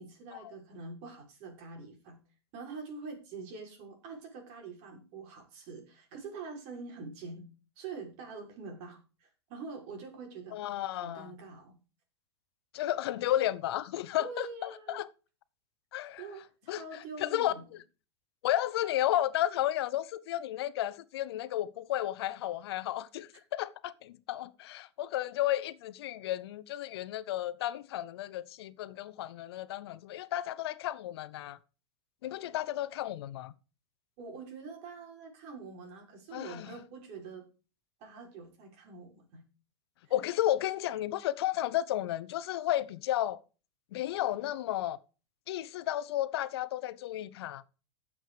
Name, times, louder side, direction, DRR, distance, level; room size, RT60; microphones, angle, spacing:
voice 1, 0.0-2.2 2.5-7.5 7.8-11.7 14.2-15.0 16.2-17.6 34.2-37.5 38.0-39.4 40.0-40.2, right 4 dB, 50° right, 6.0 m, -45 dB
voice 2, 10.5-11.3 12.7-15.1 15.9-16.2 16.7-16.8 17.2-17.5 18.4-31.6 32.2-33.5 36.3-36.7 40.1-43.4 43.9-45.0 45.5-47.6, left 13 dB, 65° left, 0.9 m, -33 dB
13.0 x 7.7 x 4.9 m
hypercardioid pair, 105°, 14 cm